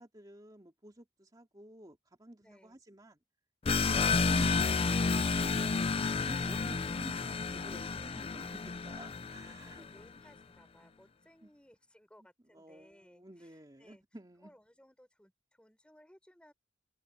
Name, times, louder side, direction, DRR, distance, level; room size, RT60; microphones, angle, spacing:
voice 1, 0.0-3.2 3.7-9.8 11.4-11.5 12.5-14.5, right 1 dB, 20° right, 2.6 m, -52 dB
voice 2, 2.4-2.8 9.2-14.0 14.4-16.5, equal, 5° left, 4.5 m, -62 dB
sound 1, 3.7-9.9, left 4 dB, 30° left, 0.5 m, -31 dB
head